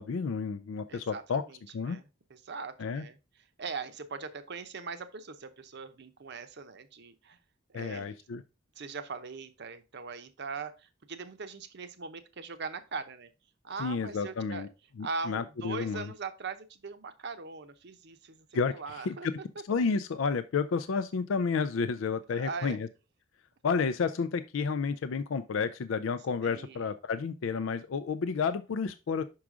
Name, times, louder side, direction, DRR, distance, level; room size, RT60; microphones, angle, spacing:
voice 1, 0.0-1.4 1.7-2.0 2.8-3.0 7.7-8.4 13.8-14.7 15.0-16.1 18.5-18.7 19.1-19.3 19.7-22.9 23.6-29.2, left 5 dB, 75° left, 11 dB, 0.4 m, -31 dB
voice 2, 0.9-3.2 3.6-7.4 7.7-8.1 8.8-13.3 13.6-14.7 15.0-19.3 22.3-22.8 26.4-26.9, right 4 dB, 60° right, 10 dB, 0.7 m, -41 dB
6.1 x 4.8 x 3.7 m, 0.28 s
head